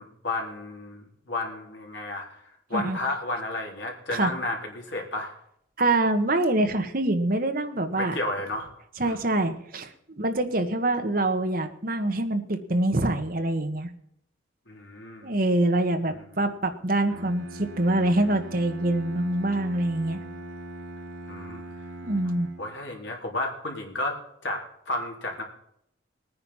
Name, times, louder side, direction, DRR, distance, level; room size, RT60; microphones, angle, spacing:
voice 1, 0.0-2.4 2.7-5.4 8.0-8.7 9.0-9.2 14.7-15.3 16.1-16.5 21.3-21.6 22.6-25.4, left 2 dB, 75° left, 1 dB, 3.6 m, -32 dB
voice 2, 5.8-8.2 9.0-13.9 15.2-20.2 22.0-22.5, right 2 dB, 45° right, 7 dB, 1.4 m, -25 dB
Bowed string instrument, 17.1-22.9, right 1 dB, 80° right, 1.6 m, -40 dB
19.0 x 9.5 x 5.6 m, 0.74 s
head